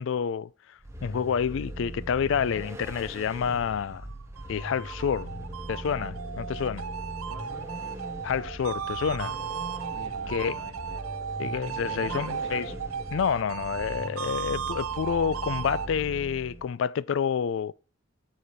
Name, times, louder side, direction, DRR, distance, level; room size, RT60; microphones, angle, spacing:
voice 1, 0.0-4.1 4.5-5.3 5.7-6.8 8.2-9.4 10.3-10.7 11.4-12.8 13.1-17.7, left 7 dB, 60° left, 0.3 m, -29 dB
Vehicle, 0.8-16.7, right 1 dB, 15° right, 1.0 m, -40 dB
sound 1, 4.1-15.9, right 7 dB, 85° right, 0.5 m, -36 dB
voice 2, 7.3-7.7 9.9-11.0 11.6-12.5, right 3 dB, 70° right, 1.0 m, -45 dB
9.0 x 4.8 x 4.1 m
head